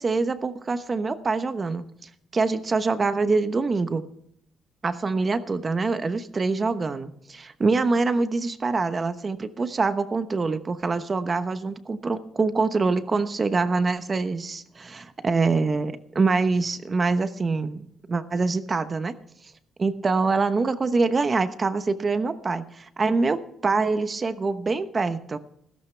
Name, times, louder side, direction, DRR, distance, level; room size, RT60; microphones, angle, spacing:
voice 1, 0.0-4.0 4.8-19.1 19.8-25.4, right 3 dB, 35° right, 11 dB, 1.0 m, -25 dB
15.5 x 14.5 x 3.4 m, 0.72 s
cardioid pair, 90°, 0 cm